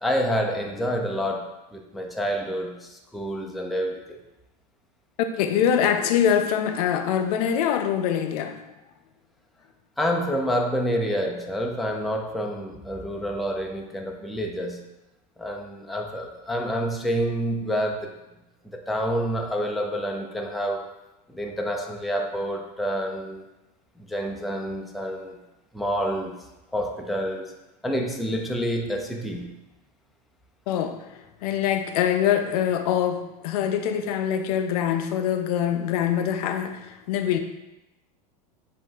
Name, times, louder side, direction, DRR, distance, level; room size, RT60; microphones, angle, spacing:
voice 1, 0.0-4.2 10.0-14.8 15.4-18.1 18.6-20.9 21.3-23.4 24.0-25.4 25.7-26.5 26.7-27.5 27.8-29.5, equal, ahead, 0.4 m, -28 dB
voice 2, 5.2-8.6 30.7-37.4, left 9 dB, 65° left, 0.5 m, -24 dB
7.2 x 2.6 x 2.3 m
supercardioid pair, 115°, 21 cm